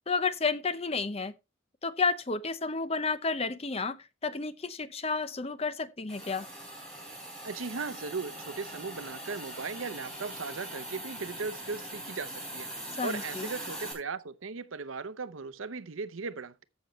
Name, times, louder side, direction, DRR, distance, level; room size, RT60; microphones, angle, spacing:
voice 1, 0.1-1.3 1.8-6.5 13.0-13.5, left 4 dB, 30° left, 0.7 m, -31 dB
Hiss, 6.1-13.9, right 1 dB, 5° left, 4.1 m, -42 dB
voice 2, 7.4-16.6, right 4 dB, 80° right, 0.8 m, -38 dB
14.5 x 6.3 x 3.1 m
head